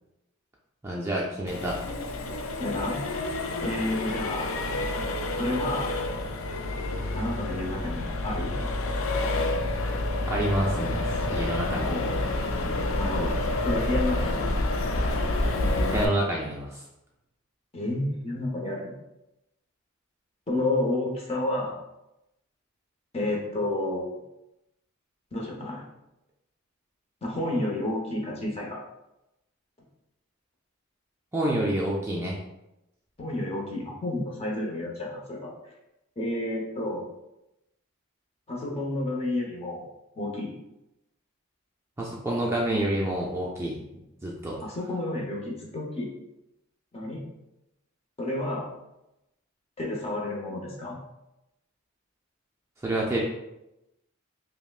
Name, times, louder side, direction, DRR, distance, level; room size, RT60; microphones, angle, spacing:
voice 1, 0.8-1.8 10.3-11.0 11.3-11.9 15.9-16.8 31.3-32.4 42.0-43.8 44.2-44.6 52.8-53.2, right 1 dB, 10° right, -3 dB, 0.4 m, -28 dB
Accelerating revving vroom, 1.5-16.1, left 2 dB, 65° left, 0.4 m, -28 dB
voice 2, 2.6-3.0 3.2-3.4 3.6-4.6 5.4-5.9 7.1-8.6 11.7-12.2 12.9-13.3 13.6-14.4 17.7-18.9 20.5-21.8 23.1-24.2 25.3-25.8 27.2-28.8 33.2-35.5 36.2-37.1 38.5-39.8 40.2-40.5 44.6-46.1 46.9-47.2 48.2-48.7 49.8-51.0, left 1 dB, 30° left, -2 dB, 0.8 m, -30 dB
5.4 x 2.1 x 2.3 m, 0.91 s
head